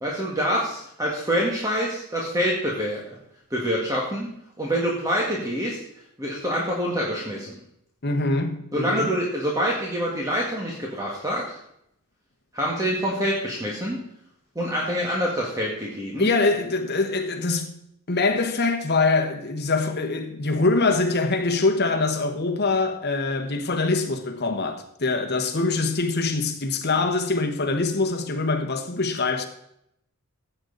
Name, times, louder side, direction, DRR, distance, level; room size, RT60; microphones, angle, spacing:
voice 1, 0.0-3.0 3.5-4.3 4.6-5.8 6.2-7.6 8.7-11.6 12.5-14.0 14.6-16.3, equal, 15° right, 1.8 m, -26 dB
voice 2, 8.0-9.1 16.2-17.7 18.1-29.5, left 3 dB, 50° left, 1.3 m, -24 dB
15.0 x 8.0 x 4.0 m
head